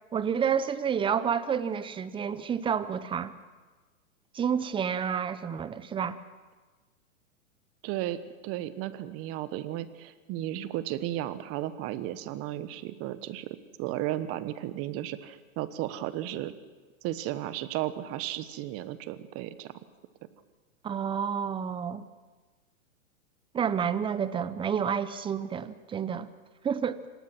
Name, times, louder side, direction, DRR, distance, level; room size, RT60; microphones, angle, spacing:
voice 1, 0.1-3.3 4.3-6.2 20.8-22.0 23.5-26.3 26.6-27.0, right 7 dB, 10° right, 0.7 m, -29 dB
voice 2, 7.8-16.5 17.0-19.7, right 13 dB, 35° right, 1.3 m, -34 dB
26.0 x 19.0 x 6.1 m
hypercardioid pair, 125°, 41 cm